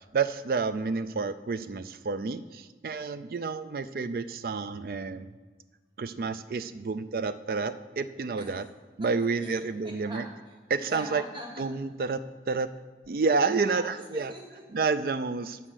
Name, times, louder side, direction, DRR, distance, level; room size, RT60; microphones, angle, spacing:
voice 1, 0.1-5.3 6.0-8.7 9.0-10.3 10.7-11.2 11.6-12.2 12.5-12.7 13.1-14.3 14.7-15.6, right 4 dB, 55° right, 13 dB, 0.4 m, -29 dB
voice 2, 9.0-11.6 13.5-14.6, right 1 dB, 25° right, 0 dB, 1.4 m, -44 dB
10.0 x 4.3 x 6.4 m, 1.4 s
head